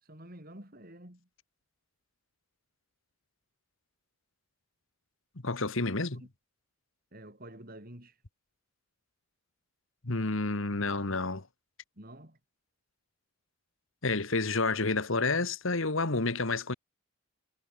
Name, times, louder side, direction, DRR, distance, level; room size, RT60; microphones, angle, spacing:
voice 1, 0.0-1.3 6.2-6.3 7.1-8.2 12.0-12.4, right 1 dB, 40° right, 4.9 m, -49 dB
voice 2, 5.4-6.2 10.0-11.4 14.0-16.7, left 3 dB, 60° left, 1.6 m, -29 dB
head